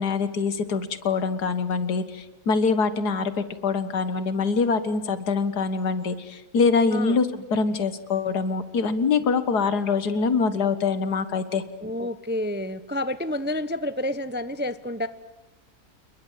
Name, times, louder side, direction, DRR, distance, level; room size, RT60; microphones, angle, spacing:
voice 1, 0.0-11.6, left 4 dB, 85° left, 12 dB, 2.0 m, -24 dB
voice 2, 11.8-15.1, left 1 dB, 15° right, 13 dB, 0.4 m, -29 dB
29.5 x 21.0 x 7.5 m, 1.0 s
omnidirectional pair, 1.7 m